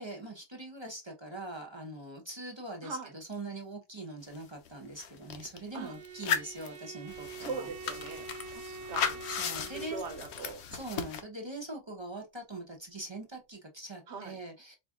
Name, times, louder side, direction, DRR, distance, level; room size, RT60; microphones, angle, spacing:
voice 1, 0.0-7.7 9.3-10.0 10.7-14.8, right 2 dB, 25° right, 0.8 m, -42 dB
voice 2, 2.8-3.1 5.7-6.0 7.4-9.2 9.6-10.6 14.1-14.4, right 4 dB, 80° right, 1.1 m, -41 dB
sound 1, 4.4-4.5 4.7-5.6 6.1-11.2, left 7 dB, 75° left, 1.0 m, -36 dB
Bowed string instrument, 5.7-10.4, right 4 dB, 50° right, 0.5 m, -46 dB
4.3 x 2.4 x 3.6 m
omnidirectional pair, 1.2 m